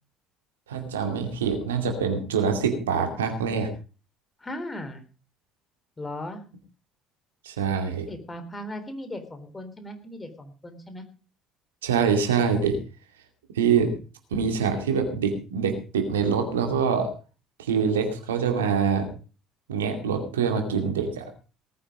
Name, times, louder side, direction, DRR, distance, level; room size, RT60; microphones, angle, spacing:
voice 1, 0.7-3.7 7.4-8.1 11.8-12.8 13.5-13.9 14.3-17.1 17.6-19.1 19.7-21.3, right 6 dB, 80° right, 5 dB, 2.4 m, -25 dB
voice 2, 4.4-5.0 6.0-6.4 8.1-11.1, left 1 dB, 20° left, 8 dB, 3.6 m, -37 dB
18.5 x 9.5 x 4.9 m, 0.35 s
figure-of-eight pair, 55°, 0 cm